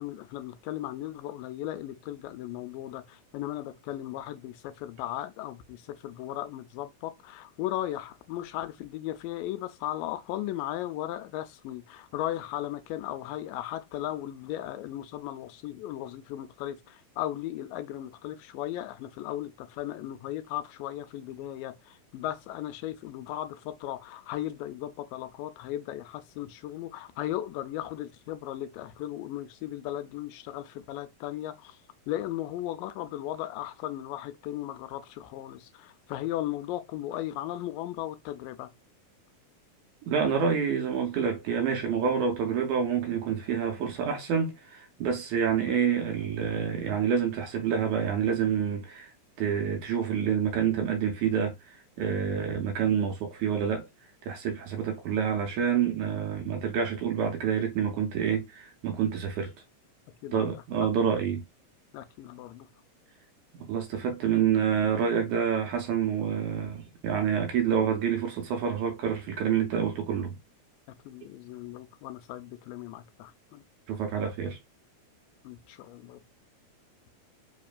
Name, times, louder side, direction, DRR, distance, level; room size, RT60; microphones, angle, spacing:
voice 1, 0.0-31.8 32.1-38.7 60.2-60.5 60.8-60.9 61.9-62.7 71.1-73.6 75.4-76.2, left 13 dB, 90° left, 2.3 m, -36 dB
voice 2, 40.0-49.1 49.4-53.9 54.3-59.5 60.3-61.4 63.5-70.4 73.9-74.6, right 7 dB, 75° right, 1.8 m, -28 dB
5.0 x 3.0 x 2.2 m
omnidirectional pair, 3.8 m